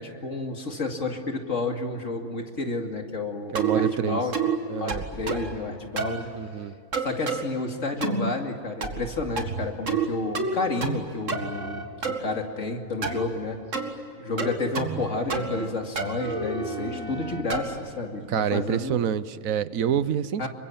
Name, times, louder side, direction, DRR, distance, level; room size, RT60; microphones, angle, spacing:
voice 1, 0.0-4.3 4.8-6.3 7.0-13.6 14.2-19.0 20.4-20.5, left 3 dB, 65° left, 3 dB, 2.9 m, -30 dB
sound 1, 3.5-3.9 4.3-4.6 4.9-5.5 6.0-6.2 6.9-7.4 8.0-8.3 8.8-9.1 9.4-10.1 10.3-11.0 11.3-12.2 13.0-13.3 13.7-13.9 14.4-15.0 15.3-15.7 16.0-17.8, right 5 dB, 65° right, 2.4 m, -29 dB
voice 2, 3.5-4.2 4.7-5.0 6.4-6.7 18.3-20.5, right 9 dB, 85° right, 15 dB, 1.3 m, -27 dB
27.5 x 23.5 x 8.8 m, 2.6 s
omnidirectional pair, 1.4 m